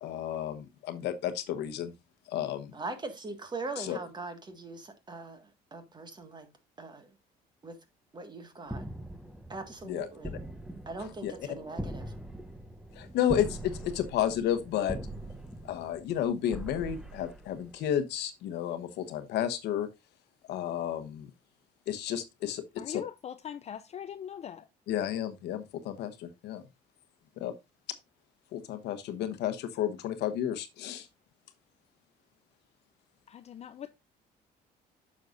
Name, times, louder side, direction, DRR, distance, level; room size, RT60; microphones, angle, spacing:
voice 1, 0.0-1.9 2.3-2.7 3.8-4.0 9.8-10.1 11.2-11.3 13.0-15.0 15.6-19.9 20.5-21.3 21.9-23.0 24.9-26.6 27.4-27.5 28.5-31.1, left 10 dB, 80° left, 1.1 m, -32 dB
voice 2, 2.7-6.5 6.8-7.1 7.6-7.8 8.1-8.8 9.5-10.4 10.8-12.1, right 3 dB, 25° right, 1.7 m, -41 dB
sound 1, 8.7-18.0, right 1 dB, 5° right, 0.9 m, -42 dB
voice 3, 22.8-24.7 33.3-33.9, left 9 dB, 40° left, 0.5 m, -41 dB
9.3 x 6.4 x 2.5 m
cardioid pair, 110°, 17 cm